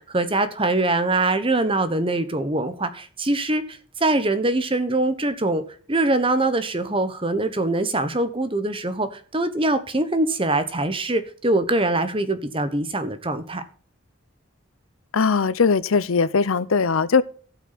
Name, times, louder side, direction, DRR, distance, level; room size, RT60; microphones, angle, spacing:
voice 1, 0.0-5.6 5.9-13.6, right 2 dB, 25° right, 1.2 m, -23 dB
voice 2, 15.1-17.2, left 5 dB, 80° left, 0.6 m, -20 dB
16.5 x 6.0 x 4.1 m
head